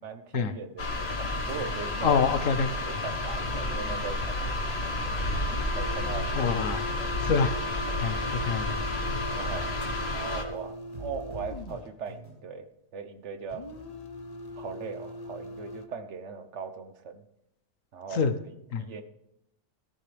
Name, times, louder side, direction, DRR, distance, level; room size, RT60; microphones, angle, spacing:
voice 1, 0.0-2.2 2.8-5.4 5.7-6.4 7.0-7.1 7.9-8.3 9.3-9.7 10.1-12.7 12.9-13.7 14.6-17.2 17.9-18.3 18.8-19.0, right 5 dB, 65° right, 9 dB, 1.3 m, -39 dB
sound 1, 0.8-10.4, left 2 dB, 55° left, 1.6 m, -31 dB
voice 2, 2.0-2.7 6.4-6.8 7.2-7.5 8.0-8.2 8.4-8.8 18.1-18.3 18.7-18.8, left 5 dB, 85° left, 10 dB, 1.3 m, -25 dB
sound 2, 3.4-3.6 4.2-4.4 4.9-6.7 7.2-7.4 7.9-9.7 10.2-10.4 10.9-12.4, right 1 dB, 80° right, 6.0 m, -43 dB
sound 3, 5.4-12.0 13.5-15.9, left 2 dB, 35° left, 0.8 m, -41 dB
15.0 x 13.5 x 3.4 m, 0.83 s
omnidirectional pair, 1.3 m